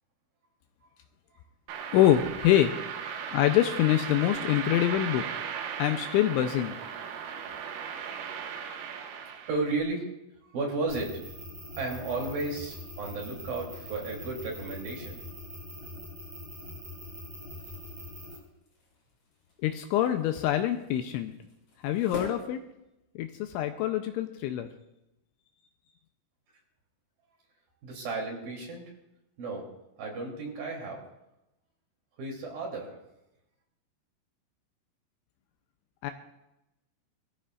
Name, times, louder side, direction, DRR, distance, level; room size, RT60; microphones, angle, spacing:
sound 1, 1.7-9.8, right 7 dB, 90° right, 4.0 m, -37 dB
voice 1, 1.9-2.8 3.3-5.3 5.8-6.8 19.6-21.3 21.8-22.6 23.2-24.7 36.0-36.1, left 12 dB, 80° left, 7 dB, 2.9 m, -25 dB
voice 2, 9.5-10.1 10.4-11.2 11.8-15.2 27.8-28.9 29.4-29.7 30.0-31.0 32.2-33.0, right 3 dB, 50° right, -1 dB, 4.5 m, -33 dB
sound 2, 10.9-18.4, left 1 dB, 35° right, 6.0 m, -43 dB
sound 3, 17.4-23.4, left 2 dB, 50° left, 6.6 m, -47 dB
22.5 x 14.0 x 2.5 m, 0.89 s
omnidirectional pair, 5.7 m